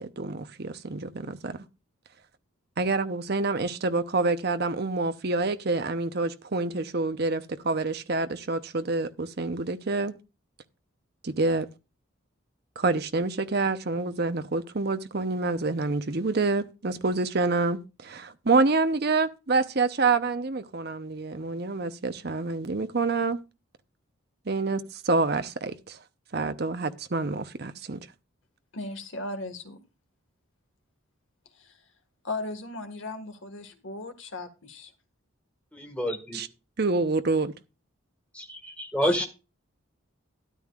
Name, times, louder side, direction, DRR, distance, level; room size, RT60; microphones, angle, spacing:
voice 1, 0.0-1.6 2.8-10.2 11.2-11.7 12.8-23.4 24.5-26.0 26.3-28.1 36.3-36.5 36.8-37.5, right 3 dB, 50° right, 0.8 m, -27 dB
voice 2, 28.7-29.8 31.6-31.8 32.2-34.9 39.0-39.3, left 2 dB, 65° left, 1.8 m, -37 dB
voice 3, 38.3-39.2, equal, 5° left, 1.8 m, -27 dB
13.0 x 10.5 x 2.4 m
head